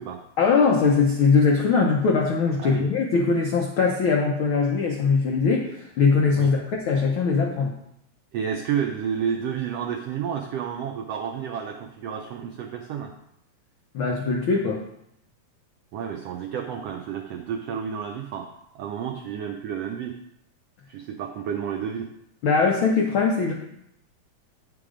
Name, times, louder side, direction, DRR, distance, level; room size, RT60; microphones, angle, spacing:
voice 1, 0.4-7.7 13.9-14.8 22.4-23.5, left 4 dB, 85° left, 0 dB, 1.1 m, -21 dB
voice 2, 8.3-13.1 15.9-18.5 18.7-20.2 20.9-22.1, right 8 dB, 85° right, 3 dB, 1.4 m, -30 dB
9.3 x 5.9 x 5.0 m, 0.78 s
omnidirectional pair, 3.6 m